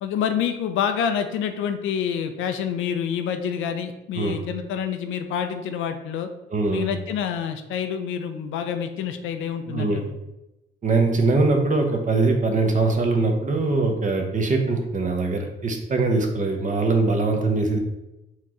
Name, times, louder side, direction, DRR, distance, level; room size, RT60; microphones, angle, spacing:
voice 1, 0.0-6.3 6.7-10.2, left 8 dB, 85° left, 8 dB, 0.5 m, -27 dB
voice 2, 6.5-6.9 9.7-10.0 10.8-17.8, right 3 dB, 40° right, 3 dB, 0.9 m, -22 dB
4.5 x 3.0 x 3.7 m, 0.94 s
cardioid pair, 90°, 20 cm